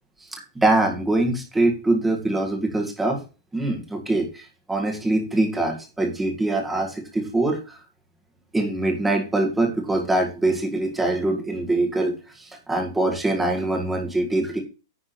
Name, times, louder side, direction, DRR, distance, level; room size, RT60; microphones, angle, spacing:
voice 1, 0.6-3.2 3.5-7.6 8.5-14.6, right 2 dB, 5° right, 2 dB, 1.7 m, -23 dB
10.0 x 3.6 x 6.7 m, 0.32 s
supercardioid pair, 170°, 2 cm